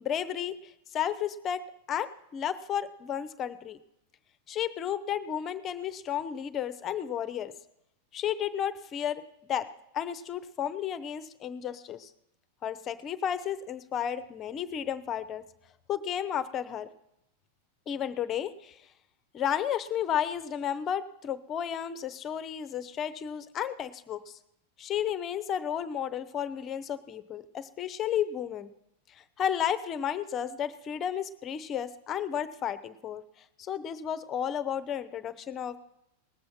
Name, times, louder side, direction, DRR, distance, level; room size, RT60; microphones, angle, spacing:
voice 1, 0.0-1.6 1.9-3.8 4.5-7.5 8.1-9.2 9.5-12.1 12.6-15.4 15.9-16.9 17.9-18.8 19.3-24.4 24.8-28.7 29.1-33.2 33.6-35.8, left 9 dB, 30° left, 14 dB, 0.8 m, -32 dB
19.0 x 7.7 x 5.7 m, 0.82 s
figure-of-eight pair, 90°, 0 cm